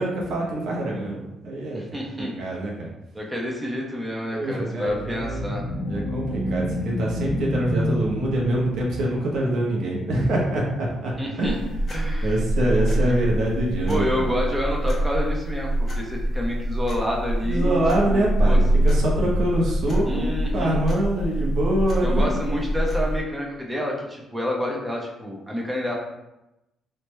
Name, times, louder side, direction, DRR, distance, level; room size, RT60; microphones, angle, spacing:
voice 1, 0.0-1.8 2.2-2.9 4.3-5.5 5.9-11.1 11.4-11.7 12.2-14.3 17.4-22.3, right 1 dB, 75° right, -2 dB, 0.7 m, -25 dB
voice 2, 1.7-2.3 3.1-5.6 11.2-11.6 11.9-12.4 13.9-17.8 18.1-18.6 20.1-20.8 22.0-25.9, left 1 dB, 10° right, -2 dB, 0.7 m, -28 dB
sound 1, 4.8-9.2, left 1 dB, 65° left, 0.7 m, -29 dB
sound 2, 11.4-23.2, right 1 dB, 40° left, 0.9 m, -24 dB
3.3 x 2.1 x 3.1 m, 0.93 s
cardioid pair, 90°, 0 cm